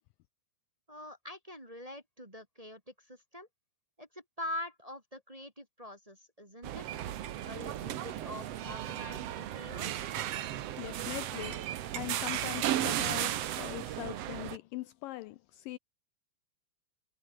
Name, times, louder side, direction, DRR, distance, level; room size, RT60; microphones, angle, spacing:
voice 1, 0.9-3.5 4.0-7.0 7.4-10.1, left 1 dB, 10° right, 2.3 m, -44 dB
sound 1, 6.6-14.6, right 12 dB, 85° right, 1.3 m, -35 dB
voice 2, 10.8-11.7 12.0-15.8, left 17 dB, 85° left, 2.0 m, -41 dB
omnidirectional pair, 4.5 m